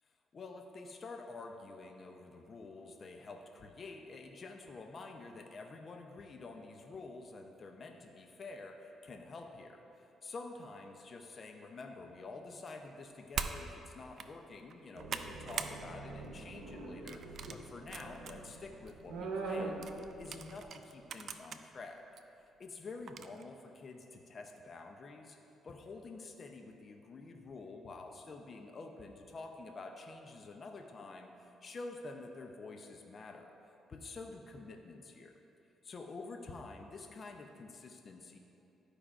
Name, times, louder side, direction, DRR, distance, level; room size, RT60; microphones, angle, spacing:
voice 1, 0.3-22.0 22.6-25.4 25.6-33.5 33.9-35.3 35.8-38.4, left 3 dB, 45° left, 3 dB, 0.5 m, -48 dB
sound 1, 13.3-13.6 14.0-14.3 14.7-15.8 16.1-16.4 17.1-18.3 18.9-19.0 19.8-21.6 22.2-22.3 23.1-23.4, right 6 dB, 60° right, 0.3 m, -42 dB
sound 2, 15.0-20.6, right 3 dB, 85° right, 0.8 m, -43 dB
12.0 x 4.9 x 2.5 m, 2.9 s
cardioid pair, 90°, 0 cm